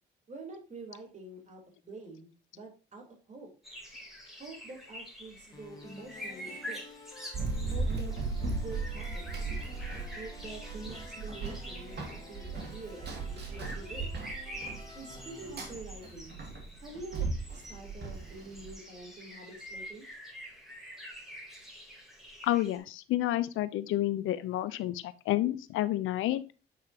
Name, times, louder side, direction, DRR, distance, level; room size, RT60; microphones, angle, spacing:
voice 1, 0.3-3.5 4.4-6.8 7.7-9.5 10.1-14.1 14.9-16.4 16.8-20.1, right 2 dB, 35° right, 1 dB, 3.5 m, -47 dB
sound 1, 3.6-22.8, equal, ahead, 3.2 m, -47 dB
sound 2, 5.5-15.7, left 2 dB, 20° left, 1.6 m, -52 dB
Run, 7.3-18.7, right 3 dB, 55° right, 2.3 m, -37 dB
voice 2, 22.4-26.4, left 14 dB, 85° left, 15 dB, 0.6 m, -30 dB
8.5 x 5.8 x 2.8 m, 0.33 s
cardioid pair, 90°, 20 cm